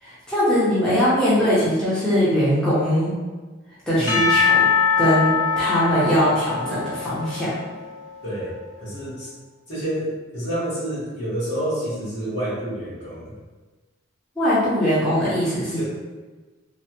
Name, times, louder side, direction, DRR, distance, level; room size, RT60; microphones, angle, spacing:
voice 1, 0.0-3.1 3.9-4.7 5.0-7.5 14.4-15.8, equal, 5° left, -11 dB, 0.7 m, -21 dB
voice 2, 3.9-4.3 8.2-9.3 9.7-13.3 15.7-15.8, right 1 dB, 60° left, -9 dB, 1.4 m, -29 dB
Percussion / Church bell, 4.1-8.2, left 6 dB, 80° left, 0.6 m, -22 dB
3.3 x 2.2 x 2.8 m, 1.3 s
head